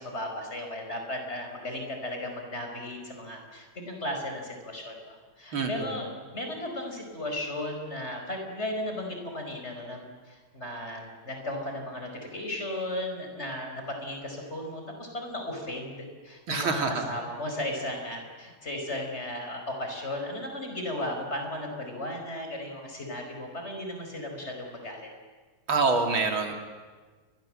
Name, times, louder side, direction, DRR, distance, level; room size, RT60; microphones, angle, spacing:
voice 1, 0.0-16.0 16.2-25.1, left 1 dB, 30° left, 3 dB, 5.0 m, -35 dB
voice 2, 5.5-5.9 16.5-17.1 25.7-26.5, right 4 dB, 75° right, 5 dB, 3.4 m, -26 dB
28.0 x 23.0 x 7.6 m, 1.4 s
omnidirectional pair, 2.3 m